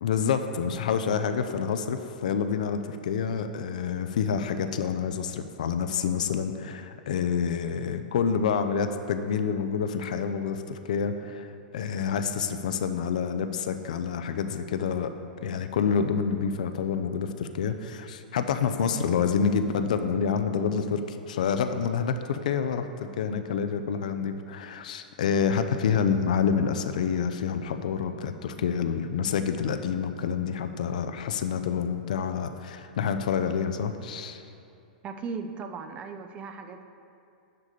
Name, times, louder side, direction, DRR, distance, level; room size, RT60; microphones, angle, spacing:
voice 1, 0.0-15.1 15.4-34.4, left 6 dB, 55° left, 8 dB, 0.5 m, -28 dB
voice 2, 35.0-36.8, right 5 dB, 25° right, 7 dB, 0.5 m, -37 dB
10.5 x 3.6 x 6.8 m, 2.6 s
figure-of-eight pair, 100°, 5 cm